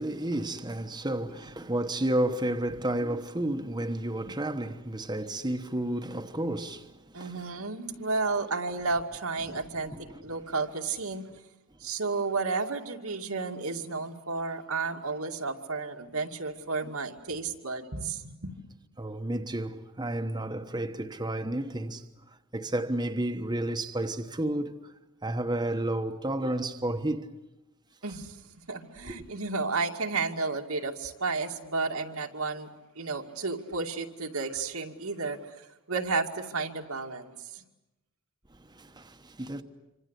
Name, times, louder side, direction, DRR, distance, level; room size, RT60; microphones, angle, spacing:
voice 1, 0.0-7.5 9.5-9.6 9.9-10.2 16.8-16.9 19.0-22.0 22.5-24.9 25.2-27.3 29.1-29.2 38.5-39.6, right 1 dB, 20° right, 1.1 m, -31 dB
voice 2, 7.1-9.9 10.2-11.2 11.8-18.5 28.0-28.4 28.7-32.7 33.0-37.6, right 4 dB, 85° right, 2.5 m, -32 dB
27.0 x 26.0 x 8.3 m
head